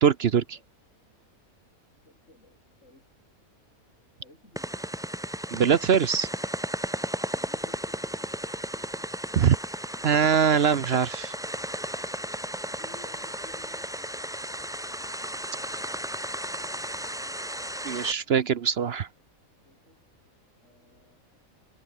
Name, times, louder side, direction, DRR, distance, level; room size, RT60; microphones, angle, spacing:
voice 1, 0.0-0.6 5.5-6.3 9.4-9.6 10.0-11.3 17.8-19.1, right 7 dB, 55° right, 0.9 m, -22 dB
voice 2, 2.0-3.1 4.2-4.9 6.9-9.1 11.9-14.7 16.2-18.7 19.6-20.0 20.6-21.2, left 2 dB, 55° left, 7.4 m, -58 dB
sound 1, 4.6-18.1, right 1 dB, 5° right, 0.5 m, -34 dB
omnidirectional pair, 1.5 m